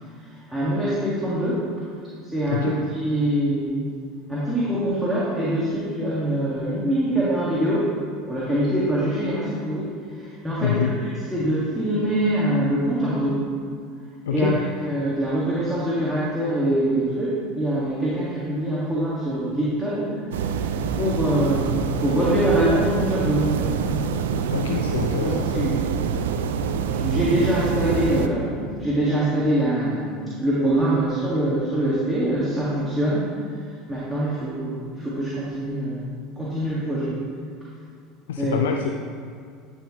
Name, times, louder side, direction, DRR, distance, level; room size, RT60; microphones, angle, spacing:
voice 1, 0.5-1.7 2.2-3.8 4.3-8.0 8.3-13.4 14.3-23.8 25.2-25.8 26.9-33.4 33.9-36.0 36.4-37.2 38.4-38.6, right 1 dB, 5° right, -9 dB, 1.9 m, -24 dB
voice 2, 2.5-2.8 10.6-11.0 14.3-14.6 24.5-25.7 38.3-38.9, left 8 dB, 80° left, 4 dB, 0.4 m, -26 dB
sound 1, 20.3-28.3, right 6 dB, 75° right, 0.4 m, -25 dB
11.0 x 5.9 x 3.1 m, 2.2 s
hypercardioid pair, 80°, 0 cm